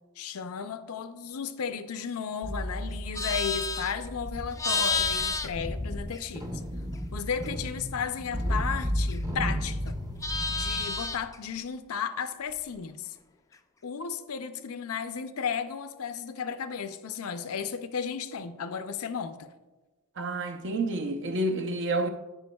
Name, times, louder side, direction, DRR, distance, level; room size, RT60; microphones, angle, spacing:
voice 1, 0.2-6.5 7.1-10.0 10.5-13.1 13.8-19.5, left 6 dB, 70° left, 0.5 m, -34 dB
sound 1, 2.4-11.0, equal, 15° right, 0.7 m, -34 dB
Livestock farm animals working animals, 2.9-6.6 6.9-9.5 9.8-11.4, left 4 dB, 15° left, 0.3 m, -32 dB
voice 2, 20.2-22.1, right 2 dB, 55° right, 0.7 m, -29 dB
14.5 x 5.0 x 2.3 m
head